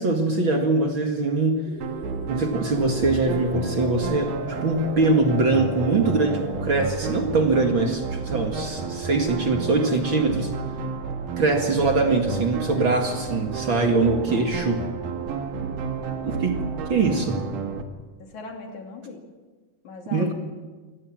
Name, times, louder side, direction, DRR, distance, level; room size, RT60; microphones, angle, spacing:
voice 1, 0.0-1.6 2.3-10.5 11.4-14.9 16.2-16.6 16.9-17.4 20.1-20.3, right 3 dB, 45° right, 3 dB, 2.5 m, -22 dB
sound 1, 1.6-6.8, left 1 dB, 15° right, 8.3 m, -36 dB
sound 2, 1.8-17.8, right 5 dB, 80° right, 3.3 m, -31 dB
voice 2, 16.0-16.4 18.2-19.2 19.8-20.3, left 3 dB, 65° left, 2 dB, 4.3 m, -39 dB
25.0 x 19.0 x 7.6 m, 1.3 s
omnidirectional pair, 3.6 m